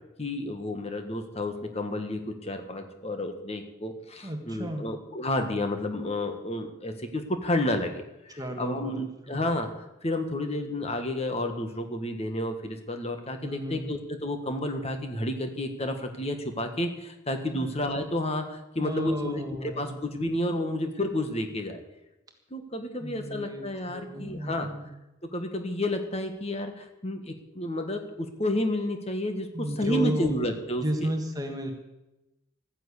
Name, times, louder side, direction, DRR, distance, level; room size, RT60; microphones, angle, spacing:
voice 1, 0.2-21.8 22.5-24.7 25.2-31.1, left 1 dB, 30° left, 6 dB, 1.6 m, -31 dB
voice 2, 4.2-4.9 8.4-9.4 13.4-13.9 17.5-17.7 18.8-20.0 23.0-24.9 29.5-30.5 30.8-31.7, equal, 20° right, 4 dB, 1.7 m, -33 dB
14.5 x 10.5 x 8.4 m, 0.93 s
head